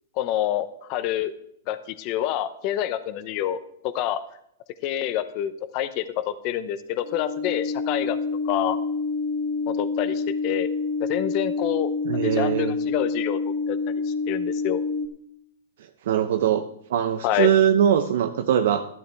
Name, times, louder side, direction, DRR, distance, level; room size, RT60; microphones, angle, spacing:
voice 1, 0.2-1.3 1.7-4.2 4.8-8.2 8.4-8.8 9.7-10.7 11.0-11.9 12.2-13.4 13.7-13.8 14.0-14.8 17.2-17.5, left 11 dB, 35° left, 12 dB, 0.7 m, -27 dB
sound 1, 7.0-15.1, left 4 dB, 75° left, 2.4 m, -27 dB
voice 2, 12.0-12.7 16.0-16.6 16.9-18.8, right 9 dB, 65° right, 7 dB, 0.7 m, -21 dB
13.5 x 12.0 x 3.4 m, 0.71 s
hypercardioid pair, 155°, 0 cm